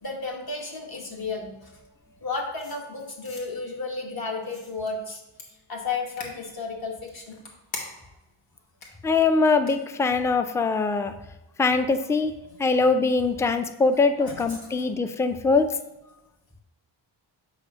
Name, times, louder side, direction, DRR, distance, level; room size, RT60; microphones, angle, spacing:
voice 1, 0.0-1.9 2.2-5.2 5.7-7.4 12.4-12.7 14.2-14.9, left 4 dB, 50° left, 0 dB, 1.7 m, -33 dB
sound 1, 2.6-3.4 4.4-4.9 5.4-5.5 6.2-6.3 7.0-8.2 8.8-8.9 9.6-9.7, left 2 dB, 85° left, 1.7 m, -40 dB
voice 2, 9.0-11.1 11.6-12.3 12.6-15.7, left 4 dB, 5° left, 9 dB, 0.4 m, -22 dB
8.2 x 2.7 x 5.5 m, 0.98 s
cardioid pair, 65°, 47 cm